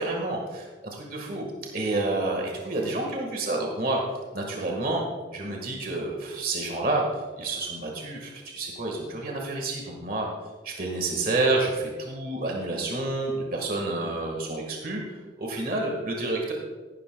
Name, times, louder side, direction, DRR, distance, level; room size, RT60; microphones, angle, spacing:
voice 1, 0.0-4.0 4.3-5.0 5.3-10.3 10.6-16.5, right 2 dB, 50° right, 0 dB, 1.6 m, -29 dB
15.0 x 12.0 x 2.3 m, 1.4 s
head